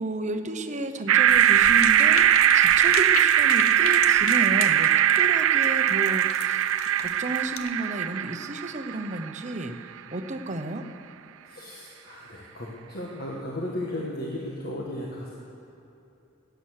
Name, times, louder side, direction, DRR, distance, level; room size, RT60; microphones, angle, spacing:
voice 1, 0.0-2.3 2.5-6.6 7.0-9.8 10.1-10.8, right 2 dB, 35° right, 6 dB, 0.9 m, -32 dB
sound 1, 1.1-9.3, right 11 dB, 70° right, 0.3 m, -20 dB
sound 2, 1.3-7.7, left 7 dB, 85° left, 0.8 m, -36 dB
voice 2, 11.4-15.3, left 1 dB, 50° left, -4 dB, 1.5 m, -35 dB
17.0 x 9.1 x 6.5 m, 2.8 s
head